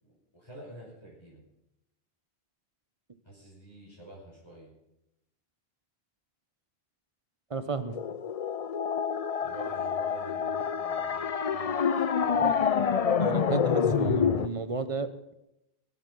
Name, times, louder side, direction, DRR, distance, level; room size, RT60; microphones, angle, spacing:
voice 1, 0.0-1.4 3.2-4.7 9.4-12.9, equal, 25° left, -5 dB, 5.4 m, -48 dB
voice 2, 7.5-8.0 12.4-12.5 13.2-15.3, right 4 dB, 30° right, 11 dB, 1.0 m, -33 dB
sound 1, 7.9-14.5, left 6 dB, 40° left, 0.6 m, -27 dB
23.5 x 8.2 x 5.4 m, 0.86 s
omnidirectional pair, 1.1 m